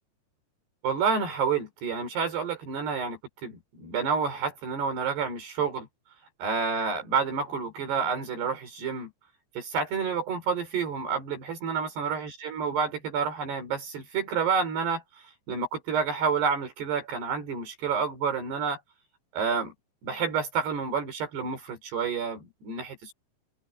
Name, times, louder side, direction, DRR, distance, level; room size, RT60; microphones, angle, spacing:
voice 1, 0.8-5.9 6.4-9.1 9.6-15.0 15.5-18.8 19.3-19.7 20.0-23.1, right 5 dB, 70° right, 6.2 m, -29 dB
omnidirectional pair, 5.0 m